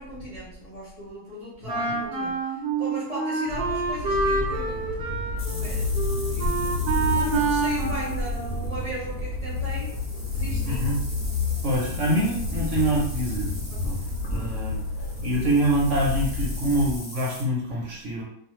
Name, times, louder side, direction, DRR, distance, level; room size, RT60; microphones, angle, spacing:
voice 1, 0.0-4.9 5.4-6.0 6.3-6.8 7.1-10.9 11.8-12.3 13.7-14.1, equal, 35° left, -8 dB, 0.7 m, -37 dB
Wind instrument woodwind instrument, 1.7-8.9, right 3 dB, 80° right, 1.2 m, -27 dB
sound 1, 3.5-17.0, left 2 dB, 70° left, 0.9 m, -29 dB
sound 2, 5.4-17.4, equal, 10° right, 0.8 m, -42 dB
voice 2, 10.6-11.0 11.6-13.5 13.8-14.0 14.3-14.8 15.2-18.2, right 1 dB, 60° right, -3 dB, 1.0 m, -25 dB
2.5 x 2.4 x 3.0 m, 0.68 s
omnidirectional pair, 1.6 m